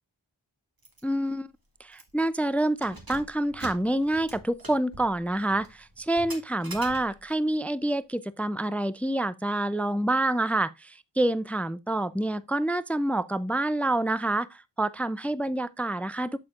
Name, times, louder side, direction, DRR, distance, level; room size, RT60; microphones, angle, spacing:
Keys jangling, 0.8-1.0 1.4-1.5 1.9-2.3 2.7-7.4, right 2 dB, 50° right, 2.1 m, -45 dB
voice 1, 1.0-1.5 1.8-16.4, right 1 dB, 5° left, 0.4 m, -27 dB
8.6 x 6.9 x 2.4 m
wide cardioid pair, 50°, 45 cm